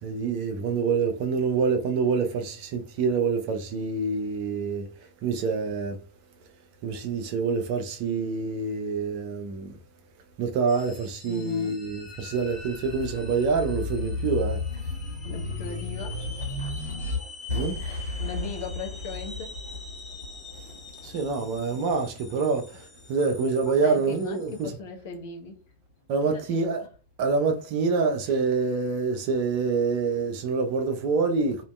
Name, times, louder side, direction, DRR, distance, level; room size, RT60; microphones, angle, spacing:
voice 1, 0.0-4.9 5.2-6.0 6.8-9.8 10.4-14.6 17.5-17.8 21.0-24.8 26.1-26.8 27.2-31.6, right 4 dB, 45° right, 0.5 m, -26 dB
sound 1, 10.7-24.6, left 3 dB, 10° left, 0.6 m, -46 dB
voice 2, 11.3-11.8 15.2-16.2 17.8-19.5 23.7-25.6, left 4 dB, 50° left, 0.6 m, -38 dB
sound 2, 11.9-22.7 23.2-24.4, left 2 dB, 75° left, 1.0 m, -34 dB
2.6 x 2.2 x 2.2 m
figure-of-eight pair, 90°, 0 cm